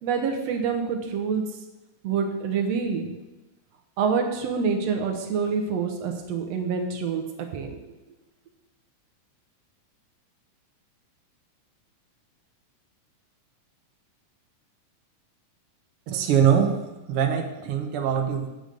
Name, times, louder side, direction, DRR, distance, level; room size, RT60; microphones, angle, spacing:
voice 1, 0.0-1.4 2.0-3.2 4.0-7.9, right 5 dB, 70° right, 4 dB, 1.6 m, -27 dB
voice 2, 16.1-18.5, right 8 dB, 90° right, 3 dB, 1.2 m, -23 dB
8.0 x 8.0 x 5.2 m, 1.0 s
omnidirectional pair, 4.0 m